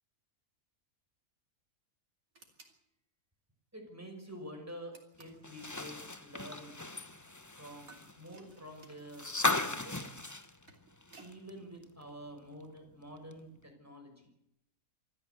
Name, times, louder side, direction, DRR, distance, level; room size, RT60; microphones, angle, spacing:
sound 1, 2.3-2.8 4.9-5.5 7.9-9.3 10.4-11.4, right 3 dB, 65° right, 3.7 m, -58 dB
voice 1, 3.7-6.7 7.5-9.3 9.6-10.1 11.2-14.3, equal, 10° right, 2 dB, 5.8 m, -48 dB
sound 2, 5.4-11.5 11.8-11.9 13.3-13.4, left 2 dB, 15° left, 0.9 m, -37 dB
25.5 x 14.0 x 8.1 m, 0.81 s
omnidirectional pair, 1.5 m